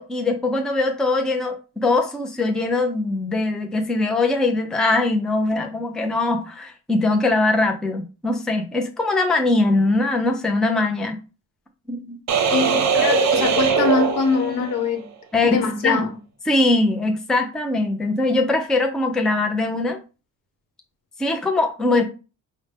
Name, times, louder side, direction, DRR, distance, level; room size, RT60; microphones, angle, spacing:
voice 1, 0.0-11.2 11.9-12.2 15.3-16.0 16.5-20.0 21.2-22.0, left 2 dB, ahead, 0.4 m, -21 dB
sound 1, 12.3-14.9, right 6 dB, 60° right, 0.6 m, -20 dB
voice 2, 12.5-15.1 15.4-16.1, left 5 dB, 90° left, 0.9 m, -22 dB
5.1 x 2.1 x 3.3 m
wide cardioid pair, 175°, 32 cm